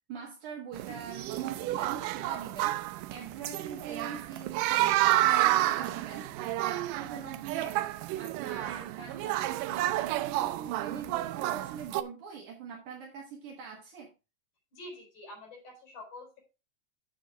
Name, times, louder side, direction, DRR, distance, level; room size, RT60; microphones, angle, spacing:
voice 1, 0.1-2.8 3.1-6.3 6.7-7.8 8.2-14.1, right 6 dB, 70° right, -1 dB, 3.0 m, -43 dB
sound 1, 0.7-12.0, right 15 dB, 90° right, 2.2 m, -30 dB
voice 2, 14.7-16.4, left 1 dB, 65° left, 1 dB, 5.7 m, -47 dB
9.4 x 7.5 x 3.6 m, 0.29 s
omnidirectional pair, 3.7 m